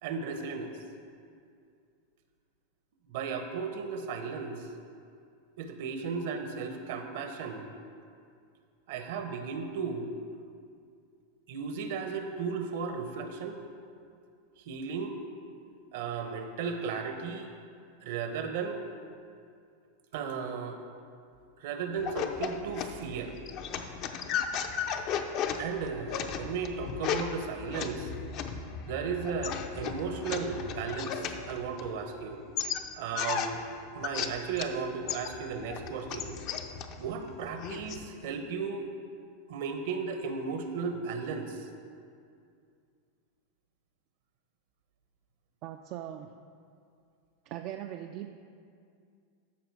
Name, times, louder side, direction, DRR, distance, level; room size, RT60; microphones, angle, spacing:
voice 1, 0.0-0.7 3.1-4.7 5.6-7.7 8.9-10.1 11.5-13.6 14.6-15.2 15.9-17.5 18.0-18.8 20.1-20.8 21.6-23.3 25.5-28.1 28.8-32.4 33.0-33.6 33.9-36.4 37.0-38.9 39.5-41.7, right 5 dB, 65° right, 6 dB, 1.0 m, -35 dB
sound 1, 22.0-32.2 32.6-34.8 35.1-38.0, left 7 dB, 45° left, 0.6 m, -35 dB
voice 2, 45.6-46.3 47.5-48.4, right 11 dB, 50° right, 6 dB, 0.4 m, -40 dB
13.0 x 4.9 x 4.7 m, 2.4 s
supercardioid pair, 130°, 0 cm